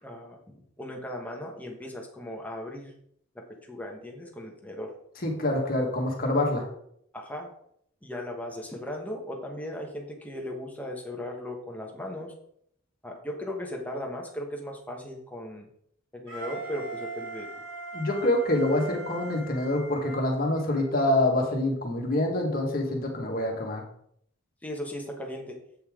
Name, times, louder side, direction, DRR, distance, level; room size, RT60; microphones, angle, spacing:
voice 1, 0.0-2.9 3.3-4.9 7.1-7.5 8.0-12.3 13.0-15.7 16.1-17.5 24.6-25.6, left 1 dB, 5° left, 0 dB, 1.2 m, -37 dB
voice 2, 5.2-6.6 17.9-23.8, left 1 dB, 45° left, 0 dB, 1.7 m, -26 dB
Wind instrument woodwind instrument, 16.3-21.0, right 3 dB, 65° right, 3.0 m, -40 dB
8.4 x 5.5 x 3.7 m, 0.70 s
head